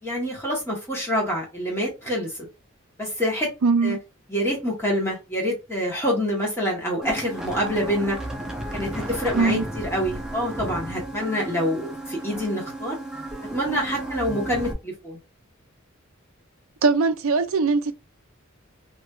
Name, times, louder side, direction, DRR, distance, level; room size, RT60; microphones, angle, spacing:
voice 1, 0.0-2.5 3.0-3.5 3.8-4.0 4.3-8.2 8.7-13.0 13.4-15.2, equal, 10° left, 1.6 m, -26 dB
voice 2, 3.6-4.0 9.3-9.7 16.8-17.9, right 4 dB, 75° right, 0.5 m, -21 dB
sound 1, 7.0-14.7, right 1 dB, 5° right, 0.7 m, -33 dB
3.1 x 2.9 x 2.3 m
head